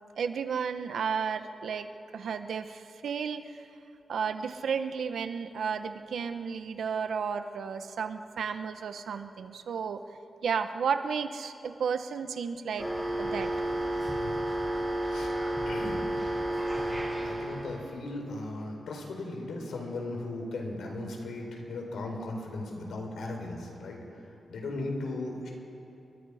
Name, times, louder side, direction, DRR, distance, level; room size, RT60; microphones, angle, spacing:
voice 1, 0.2-3.7 4.1-10.0 10.4-12.9 13.2-13.5, right 6 dB, 70° right, 8 dB, 1.1 m, -33 dB
sound 1, 12.8-17.8, right 1 dB, ahead, 7.2 m, -31 dB
voice 2, 15.6-16.0 17.0-24.0 24.5-25.5, left 2 dB, 75° left, 2 dB, 4.5 m, -37 dB
29.5 x 23.0 x 5.1 m, 2.8 s
wide cardioid pair, 160°, 0 cm